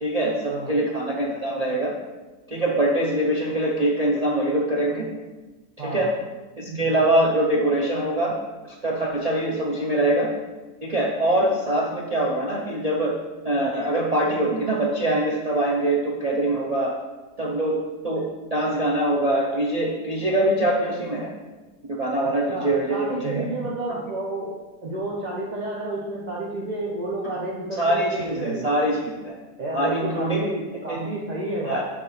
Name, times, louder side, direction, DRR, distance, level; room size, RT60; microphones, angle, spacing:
voice 1, 0.0-1.9 2.5-5.1 5.8-6.1 6.6-8.3 8.8-10.3 10.8-13.1 13.4-16.9 17.4-17.8 18.0-21.3 22.0-23.5 23.9-24.0 27.8-29.3 29.7-30.4 30.9-31.1 31.7-31.8, right 1 dB, 85° right, -4 dB, 0.3 m, -23 dB
voice 2, 5.8-6.1 22.5-24.6 24.8-28.7 29.6-31.8, right 1 dB, 40° right, -5 dB, 0.7 m, -30 dB
6.7 x 3.3 x 5.5 m, 1.2 s
omnidirectional pair, 1.7 m